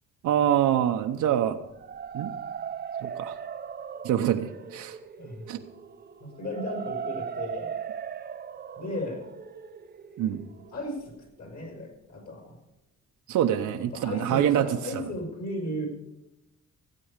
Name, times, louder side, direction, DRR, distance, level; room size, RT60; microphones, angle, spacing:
voice 1, 0.2-1.6 2.1-2.3 3.0-3.4 4.0-5.0 5.5-5.6 10.2-10.4 13.3-15.1, right 10 dB, 80° right, 6 dB, 0.9 m, -25 dB
sound 1, 1.6-11.5, right 7 dB, 35° right, 0.6 m, -38 dB
voice 2, 5.2-5.5 6.2-7.7 8.8-9.2 10.7-11.1 11.4-12.6 13.9-15.9, left 1 dB, 55° left, 2 dB, 5.3 m, -35 dB
16.0 x 8.5 x 5.1 m, 0.95 s
cardioid pair, 90°, 30 cm